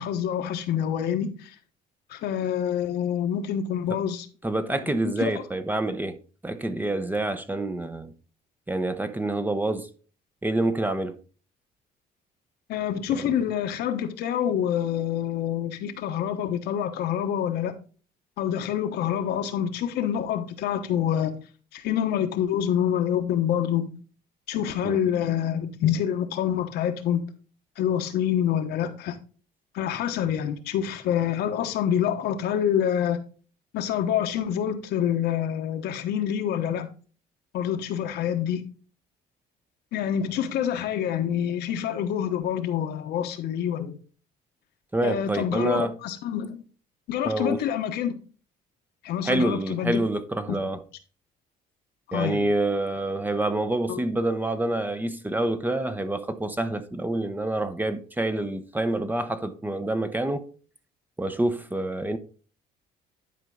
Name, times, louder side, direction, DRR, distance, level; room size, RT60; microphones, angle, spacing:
voice 1, 0.0-1.5 2.1-4.3 5.0-5.3 12.7-17.7 18.4-21.4 21.7-23.9 24.5-27.2 27.8-29.2 29.7-33.2 33.7-36.9 37.5-38.6 39.9-44.0 45.0-46.6 47.1-48.1 49.0-50.0 50.5-50.6 52.1-52.5 53.9-54.0, left 9 dB, 75° left, 1.2 m, -26 dB
voice 2, 4.4-6.2 6.4-8.1 8.7-9.9 10.4-11.2 13.1-13.3 24.8-25.0 44.9-46.0 47.2-47.6 49.2-50.8 52.1-60.5 61.2-62.2, right 2 dB, 10° right, 0.7 m, -27 dB
11.0 x 4.6 x 3.9 m
cardioid pair, 110°, 17 cm